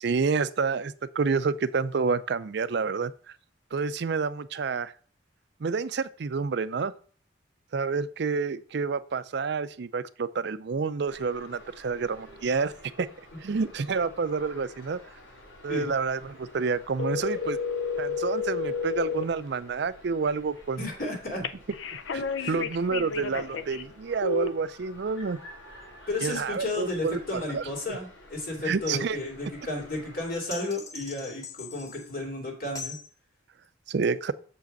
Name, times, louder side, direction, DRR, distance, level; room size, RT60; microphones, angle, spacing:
voice 1, 0.0-3.1 3.7-4.9 5.6-6.9 7.7-13.1 13.4-15.0 15.6-17.6 18.0-20.9 22.1-22.2 22.5-25.4 26.2-28.0 28.6-29.2 33.9-34.3, right 5 dB, 60° right, 15 dB, 0.4 m, -29 dB
sound 1, 11.0-30.3, left 1 dB, 85° left, 4.6 m, -51 dB
sound 2, 17.0-19.2 21.4-23.8 24.2-24.5, left 5 dB, 70° left, 0.5 m, -31 dB
voice 2, 20.8-21.4 22.4-22.6 26.1-33.0, left 2 dB, 50° left, 1 dB, 2.6 m, -33 dB
sound 3, 30.5-32.2 32.8-33.1, left 4 dB, 20° left, 1.4 m, -41 dB
7.1 x 5.0 x 5.2 m, 0.43 s
head